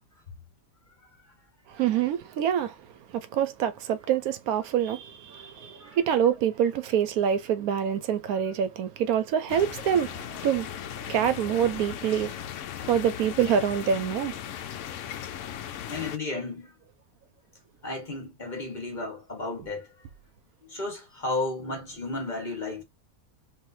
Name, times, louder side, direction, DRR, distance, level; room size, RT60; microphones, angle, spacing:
voice 1, 1.7-2.7 3.1-10.7 11.1-12.3 12.9-14.3, right 9 dB, 75° right, 1.0 m, -26 dB
sound 1, 9.5-16.2, left 10 dB, 65° left, 0.8 m, -37 dB
voice 2, 15.9-16.7 17.8-19.9 20.6-22.8, left 2 dB, 35° left, 1.2 m, -33 dB
3.1 x 2.7 x 2.6 m
omnidirectional pair, 1.6 m